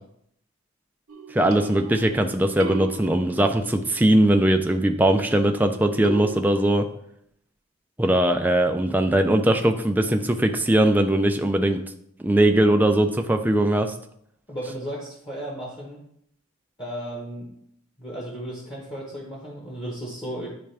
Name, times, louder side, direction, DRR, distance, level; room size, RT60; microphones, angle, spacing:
sound 1, 1.1-2.2 2.6-3.8 6.0-6.4, right 2 dB, 85° right, 1.0 m, -35 dB
voice 1, 1.3-6.9 8.0-11.8 12.2-13.9, right 1 dB, 10° right, 5 dB, 0.4 m, -20 dB
voice 2, 14.5-16.0 16.8-17.5 18.0-20.5, right 1 dB, 25° left, -4 dB, 1.2 m, -34 dB
10.0 x 3.4 x 3.4 m, 0.72 s
head